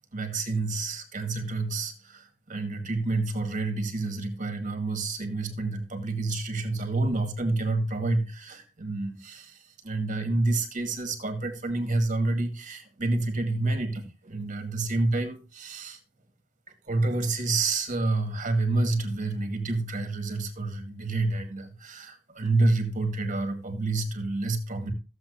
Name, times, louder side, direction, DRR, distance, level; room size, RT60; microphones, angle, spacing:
voice 1, 0.1-9.6 9.8-16.0 16.9-24.9, right 2 dB, 45° right, 2.3 m, -28 dB
15.0 x 7.8 x 2.7 m
head